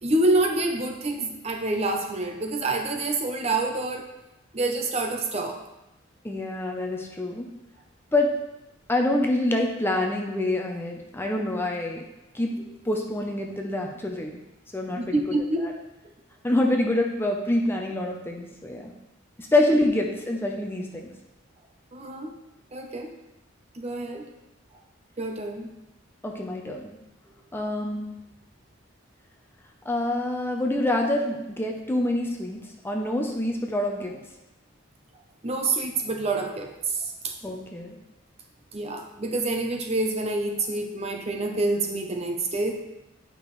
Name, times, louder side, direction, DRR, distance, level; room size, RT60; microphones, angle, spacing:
voice 1, 0.0-4.1 4.5-5.6 15.0-15.7 21.9-22.3 22.7-23.1 23.7-24.3 25.2-25.7 35.4-37.3 38.7-42.7, right 2 dB, 30° right, 3 dB, 0.7 m, -27 dB
voice 2, 6.2-7.5 8.1-8.4 8.9-12.0 12.3-14.4 14.7-15.7 16.4-18.9 19.4-21.1 26.2-26.9 27.5-28.1 29.9-34.2 37.4-37.9, left 1 dB, 10° left, 1 dB, 0.6 m, -26 dB
8.8 x 5.3 x 3.1 m, 0.93 s
head